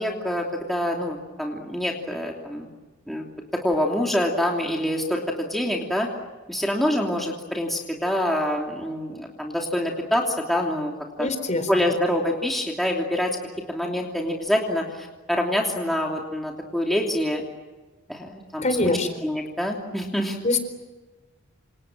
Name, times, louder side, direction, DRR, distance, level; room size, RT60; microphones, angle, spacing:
voice 1, 0.0-2.7 3.1-3.3 3.6-6.1 6.5-10.9 11.2-11.3 11.7-13.4 13.7-17.4 18.1-18.6 19.2-20.4, left 1 dB, ahead, -1 dB, 2.9 m, -26 dB
voice 2, 11.2-11.9 18.6-19.1 20.4-20.6, left 2 dB, 35° left, 9 dB, 4.3 m, -24 dB
28.0 x 28.0 x 7.7 m, 1.2 s
head